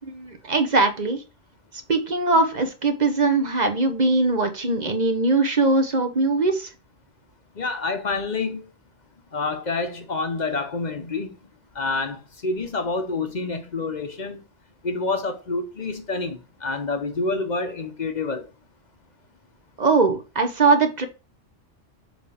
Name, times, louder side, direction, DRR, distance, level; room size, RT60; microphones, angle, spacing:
voice 1, 0.0-1.2 1.9-6.7 19.8-21.0, right 3 dB, 40° right, 0.9 m, -21 dB
voice 2, 7.5-8.7 9.3-11.3 11.7-14.4 14.8-18.5, left 3 dB, 40° left, 0.9 m, -28 dB
7.2 x 3.3 x 4.9 m
omnidirectional pair, 1.2 m